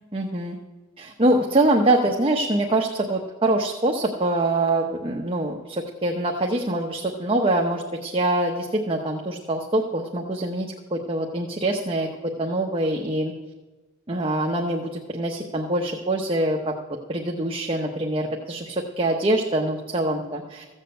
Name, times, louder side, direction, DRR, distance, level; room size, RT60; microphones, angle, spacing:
voice 1, 0.1-0.6 1.0-13.3 14.1-16.7 17.1-20.6, right 1 dB, 25° right, 1 dB, 0.9 m, -24 dB
14.5 x 7.4 x 7.9 m, 1.2 s
head